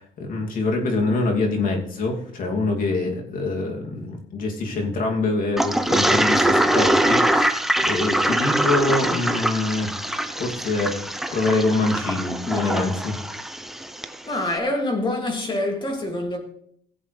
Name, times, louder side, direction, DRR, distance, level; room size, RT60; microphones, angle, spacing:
voice 1, 0.0-7.5 7.8-9.9 10.4-11.1 11.3-13.2, left 3 dB, 55° left, 2.8 m, -25 dB
Toilet flush, 5.6-14.2, right 1 dB, ahead, 0.7 m, -23 dB
voice 2, 14.2-16.4, left 1 dB, 25° left, 2.7 m, -25 dB
16.5 x 8.0 x 3.4 m
cardioid pair, 110°, 17 cm